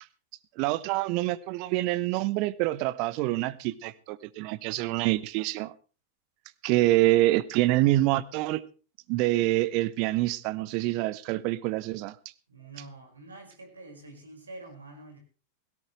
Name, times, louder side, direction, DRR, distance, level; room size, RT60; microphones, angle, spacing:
voice 1, 0.6-5.7 6.6-8.6 9.1-12.2, right 17 dB, 45° right, 1.0 m, -26 dB
voice 2, 12.5-15.2, right 2 dB, 75° right, 5.5 m, -46 dB
18.0 x 16.5 x 3.2 m
figure-of-eight pair, 90°, 0 cm